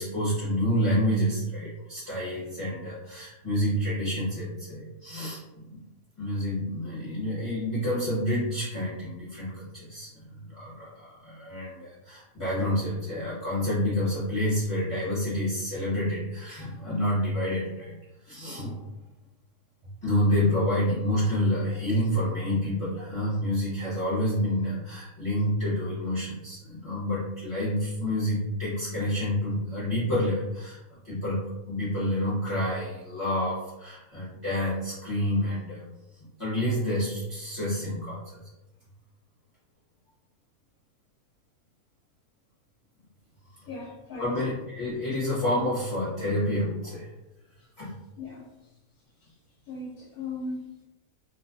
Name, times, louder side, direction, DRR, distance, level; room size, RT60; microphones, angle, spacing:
voice 1, 0.0-5.7 6.2-17.9 18.2-18.9 20.0-35.9 36.4-38.4 44.2-47.1 47.8-47.9, equal, 30° left, -11 dB, 0.7 m, -28 dB
voice 2, 43.7-44.3 48.2-48.4 49.7-50.8, left 3 dB, 75° left, -4 dB, 1.1 m, -37 dB
2.4 x 2.4 x 2.4 m, 1.0 s
omnidirectional pair, 1.6 m